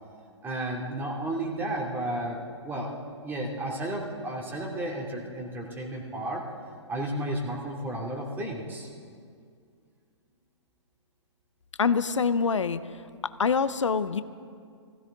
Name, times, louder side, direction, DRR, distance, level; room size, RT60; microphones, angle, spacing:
voice 1, 0.4-2.4 2.6-2.9 3.2-6.4 6.9-8.9, right 1 dB, 15° right, -1 dB, 2.5 m, -32 dB
voice 2, 11.8-12.8 13.4-14.2, left 5 dB, 80° left, 14 dB, 0.6 m, -25 dB
21.0 x 15.5 x 3.7 m, 2.2 s
figure-of-eight pair, 120°, 16 cm